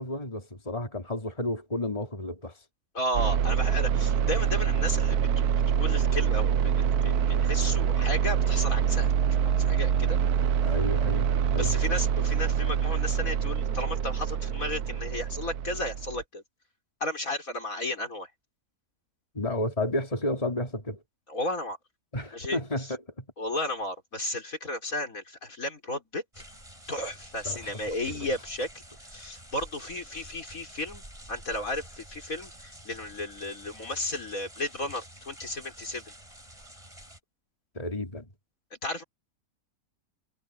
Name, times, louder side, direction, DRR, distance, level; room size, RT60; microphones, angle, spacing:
voice 1, 0.0-2.6 10.6-11.8 19.3-21.0 22.1-23.3 27.5-27.7 28.1-28.3 37.8-38.3, left 1 dB, 25° left, 3.5 m, -32 dB
voice 2, 3.0-5.2 5.5-10.2 11.5-16.4 17.0-18.3 21.3-21.8 22.3-22.9 23.4-26.4 26.9-28.8 29.1-31.0 31.3-36.0 38.7-39.0, left 1 dB, 65° left, 5.2 m, -34 dB
sound 1, 3.1-16.2, right 8 dB, 85° right, 1.4 m, -25 dB
sound 2, 26.3-37.2, right 1 dB, 20° right, 6.0 m, -49 dB
omnidirectional pair, 1.6 m